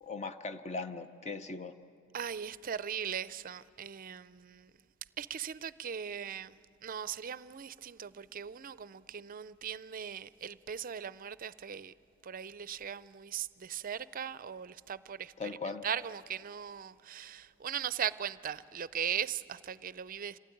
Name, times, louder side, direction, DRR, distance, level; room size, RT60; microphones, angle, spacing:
voice 1, 0.0-1.7 15.4-15.8, left 4 dB, 35° left, 0.6 m, -39 dB
voice 2, 2.1-4.7 5.2-11.9 12.2-15.3 15.8-20.4, right 8 dB, 40° right, 0.5 m, -39 dB
26.5 x 16.0 x 9.9 m
head